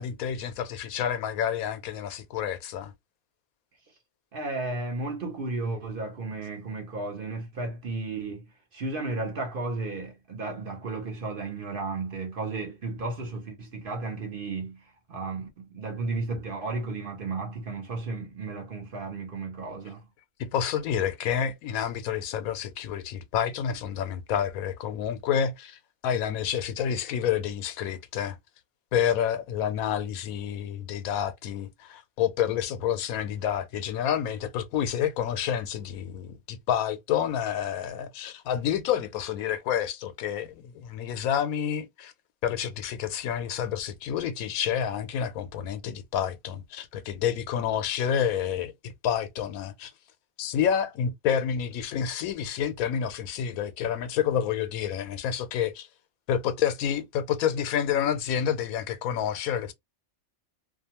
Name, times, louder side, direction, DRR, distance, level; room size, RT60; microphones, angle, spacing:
voice 1, 0.0-2.9 20.4-28.4 28.9-42.1 42.4-49.9 50.4-55.9 56.3-59.7, left 9 dB, 90° left, 1.0 m, -29 dB
voice 2, 4.3-20.1, right 3 dB, 50° right, 0.8 m, -34 dB
2.6 x 2.3 x 2.8 m
omnidirectional pair, 1.4 m